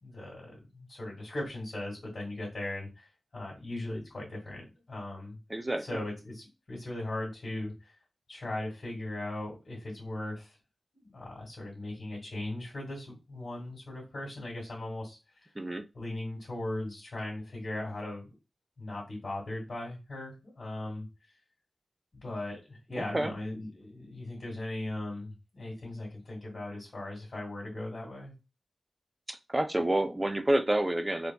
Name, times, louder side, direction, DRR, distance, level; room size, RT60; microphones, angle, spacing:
voice 1, 0.0-3.1 3.3-5.4 5.8-7.9 8.3-10.6 10.9-15.5 15.9-18.3 18.8-21.1 22.1-28.3, left 1 dB, 55° left, -6 dB, 1.8 m, -38 dB
voice 2, 5.5-6.0 15.6-15.8 23.0-23.3 29.3-31.3, right 1 dB, 20° right, 8 dB, 0.4 m, -29 dB
4.5 x 2.6 x 2.2 m, 0.27 s
wide cardioid pair, 110°, 0 cm